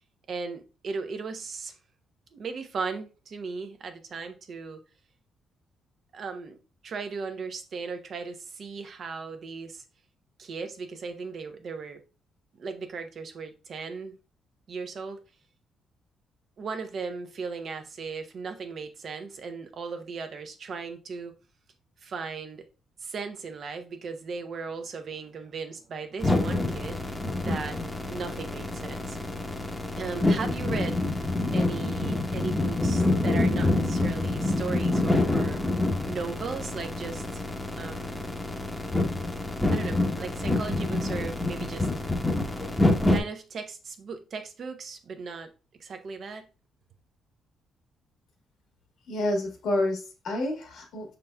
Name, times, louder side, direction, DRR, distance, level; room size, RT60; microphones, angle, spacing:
voice 1, 0.3-1.7 2.3-4.8 6.1-6.6 6.8-9.8 10.4-12.0 12.6-14.2 14.7-15.2 16.6-21.3 22.0-22.7 23.0-27.0 27.4-27.8 28.1-29.2 29.9-31.0 31.5-35.6 36.0-37.5 37.8-38.3 39.7-41.9 43.1-45.5 45.8-46.5, right 5 dB, 55° right, 0.8 m, -37 dB
sound 1, 26.2-43.2, left 2 dB, 10° left, 0.9 m, -27 dB
voice 2, 49.1-51.2, left 1 dB, 75° left, 1.6 m, -29 dB
5.5 x 4.0 x 2.2 m
cardioid pair, 90°, 0 cm